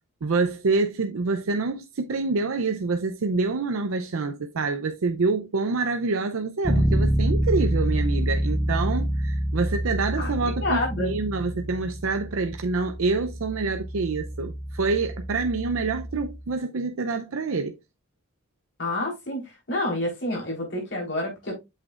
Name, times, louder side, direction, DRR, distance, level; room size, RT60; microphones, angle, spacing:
voice 1, 0.2-17.8, right 3 dB, 75° right, 0.5 m, -26 dB
Bass guitar, 6.6-16.4, equal, ahead, 0.7 m, -27 dB
voice 2, 10.2-11.1 18.8-19.4 19.7-21.5, left 1 dB, 55° left, 3.7 m, -28 dB
7.8 x 6.1 x 2.4 m
head